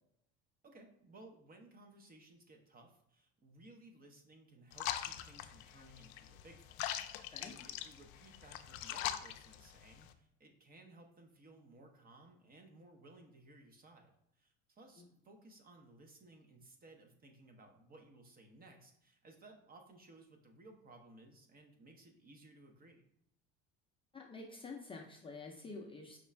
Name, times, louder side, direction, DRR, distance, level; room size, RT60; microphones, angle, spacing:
voice 1, 0.6-23.0, right 2 dB, 30° right, 3 dB, 0.8 m, -59 dB
sound 1, 4.7-10.1, left 12 dB, 85° left, 0.5 m, -42 dB
voice 2, 24.1-26.2, left 3 dB, 20° left, 0 dB, 0.5 m, -48 dB
5.2 x 2.4 x 3.2 m, 0.77 s
cardioid pair, 120°, 29 cm